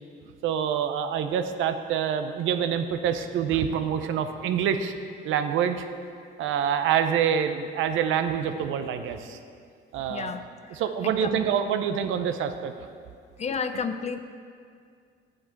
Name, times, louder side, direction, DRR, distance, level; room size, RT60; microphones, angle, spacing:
voice 1, 0.4-4.9 5.2-5.9 6.4-9.4 9.9-10.3 10.7-12.7, right 8 dB, 90° right, 9 dB, 0.6 m, -26 dB
voice 2, 10.1-10.4 11.2-11.5 13.4-14.2, left 5 dB, 35° left, 9 dB, 0.5 m, -30 dB
8.6 x 7.5 x 4.5 m, 2.2 s
cardioid pair, 90°, 20 cm